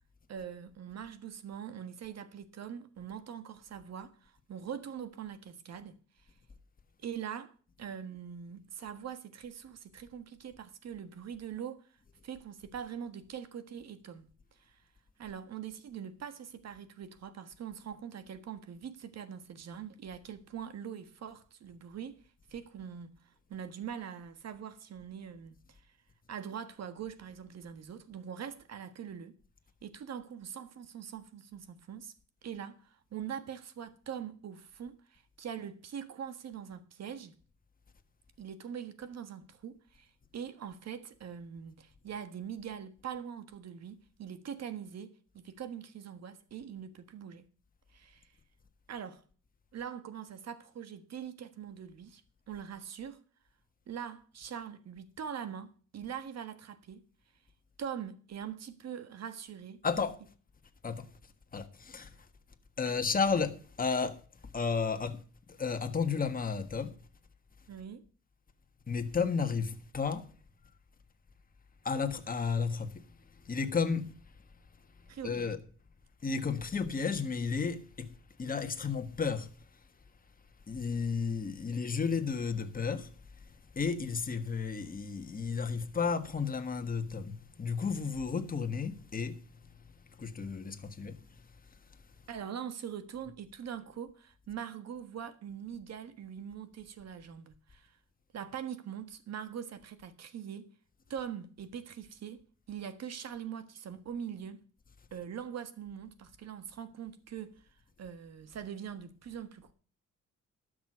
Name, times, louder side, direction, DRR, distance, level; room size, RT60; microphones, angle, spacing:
voice 1, 0.3-6.0 7.0-7.5 7.8-11.8 12.2-14.3 14.7-14.8 15.2-22.2 22.5-23.1 23.5-25.8 26.3-29.3 29.8-32.1 32.4-37.3 38.4-47.4 47.9-48.3 48.9-49.2 49.7-52.2 52.5-53.2 53.9-57.0 57.8-59.8 62.9-63.0 67.7-68.0 75.1-75.6 92.3-98.0 98.3-100.7 101.1-102.4 102.7-104.6 105.1-107.5 108.0-109.7, right 8 dB, 60° right, 1.5 m, -43 dB
voice 2, 59.8-60.2 60.8-61.1 61.5-62.1 62.8-64.2 64.5-65.2 65.6-66.9 68.9-70.2 71.8-73.0 73.5-74.1 75.2-75.6 76.2-78.1 78.4-79.5 80.7-83.1 83.7-89.4 90.2-91.2, left 5 dB, 30° left, 1.5 m, -32 dB
12.0 x 6.4 x 6.2 m
cardioid pair, 90°, 30 cm